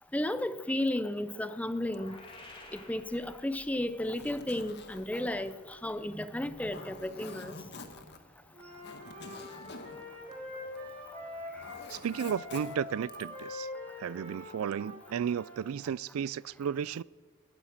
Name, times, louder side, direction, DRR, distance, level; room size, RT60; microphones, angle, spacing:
voice 1, 0.1-2.2 2.7-7.5, left 1 dB, 5° left, 0.6 m, -33 dB
sound 1, 1.7-3.9, left 2 dB, 25° left, 2.7 m, -52 dB
Zipper (clothing), 3.9-11.0 11.3-13.5, left 3 dB, 55° left, 1.5 m, -48 dB
Wind instrument woodwind instrument, 8.5-15.6, left 2 dB, 30° right, 6.2 m, -44 dB
voice 2, 11.9-13.7 14.0-17.0, right 8 dB, 85° right, 0.4 m, -34 dB
20.0 x 9.0 x 7.3 m
head